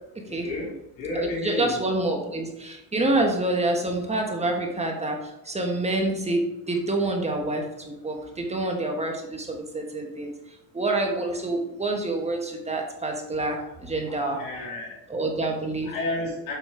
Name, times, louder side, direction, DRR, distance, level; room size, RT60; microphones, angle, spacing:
voice 1, 0.3-1.7 3.2-3.3 8.3-8.4 14.0-15.0 15.8-16.6, left 2 dB, 90° left, -3 dB, 3.0 m, -32 dB
voice 2, 1.1-5.2 5.4-10.3 10.7-14.4 15.1-15.9, right 2 dB, 15° right, 1 dB, 1.4 m, -27 dB
7.2 x 5.4 x 4.4 m, 0.90 s
cardioid pair, 115°, 41 cm